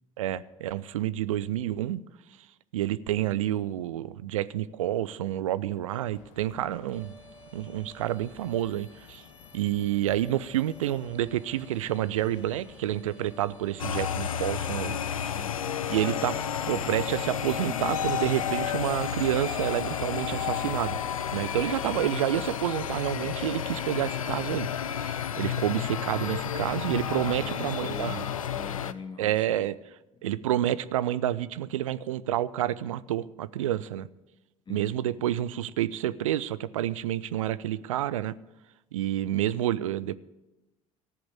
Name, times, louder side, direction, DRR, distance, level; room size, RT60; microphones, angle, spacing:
voice 1, 0.2-2.0 2.7-7.1 7.5-9.2 9.5-15.0 15.9-16.4 16.7-21.0 21.3-24.7 25.0-28.2 29.2-29.8 30.2-34.1 34.7-38.3 38.9-40.2, right 12 dB, 75° right, 0.5 m, -29 dB
sound 1, 6.1-22.0, left 9 dB, 65° left, 1.2 m, -52 dB
sound 2, 6.9-20.4, right 2 dB, 5° right, 4.1 m, -54 dB
sound 3, 13.8-28.9, left 8 dB, 80° left, 0.5 m, -31 dB
voice 2, 15.3-15.7 27.2-29.7 34.7-35.1, left 4 dB, 25° left, 1.7 m, -43 dB
14.5 x 7.9 x 8.4 m
figure-of-eight pair, 60°, 17 cm